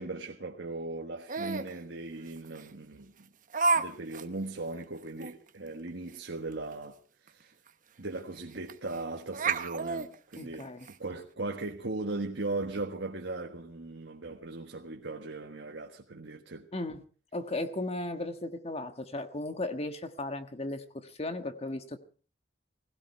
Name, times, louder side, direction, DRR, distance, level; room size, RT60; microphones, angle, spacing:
voice 1, 0.0-3.3 3.7-7.5 8.0-16.7, right 2 dB, 80° right, 1.5 m, -38 dB
Laughter, 1.3-1.7 2.6-2.7 3.5-3.9 4.1-4.2 4.7-4.8 5.2-5.3 7.3-7.4 7.7-7.8 8.7-9.0 9.3-10.9, right 4 dB, 45° right, 1.0 m, -29 dB
voice 2, 10.4-10.9 16.7-17.0 17.3-22.0, left 2 dB, 35° left, 1.4 m, -36 dB
19.0 x 16.5 x 4.6 m
head